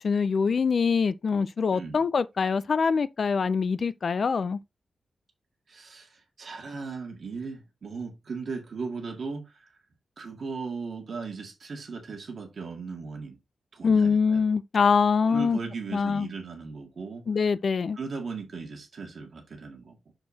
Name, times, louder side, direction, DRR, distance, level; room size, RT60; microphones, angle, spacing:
voice 1, 0.0-4.6 13.8-15.6 15.9-16.3 17.3-18.0, left 5 dB, 50° left, 0.4 m, -24 dB
voice 2, 5.7-9.7 10.2-13.4 13.7-14.4 15.2-17.3 17.9-20.1, right 4 dB, 55° right, 1.9 m, -37 dB
6.6 x 6.3 x 2.8 m
wide cardioid pair, 130°, 0 cm